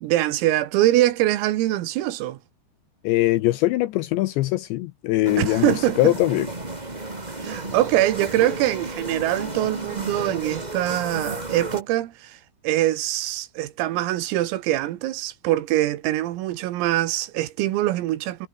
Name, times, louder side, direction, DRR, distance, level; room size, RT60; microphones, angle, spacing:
voice 1, 0.0-2.4 5.4-6.2 7.4-18.5, right 15 dB, 85° right, 4.2 m, -23 dB
voice 2, 3.0-6.5, left 17 dB, 80° left, 2.7 m, -22 dB
sound 1, 5.2-11.8, right 2 dB, 20° right, 1.2 m, -33 dB
omnidirectional pair, 5.9 m